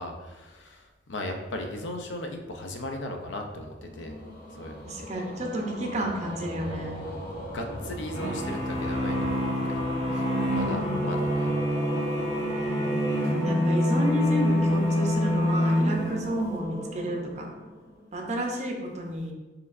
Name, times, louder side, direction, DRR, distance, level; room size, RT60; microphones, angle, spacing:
voice 1, 0.0-4.1 4.5-5.1 7.0-11.5, left 1 dB, 85° left, 4 dB, 0.5 m, -37 dB
sound 1, 3.8-18.2, equal, 55° left, 0.8 m, -37 dB
voice 2, 4.8-7.0 10.4-11.1 13.3-17.5 18.1-19.3, right 1 dB, 40° right, 1 dB, 0.6 m, -31 dB
sound 2, 8.1-16.5, equal, 35° left, 1.4 m, -26 dB
4.6 x 3.2 x 2.5 m, 1.2 s
head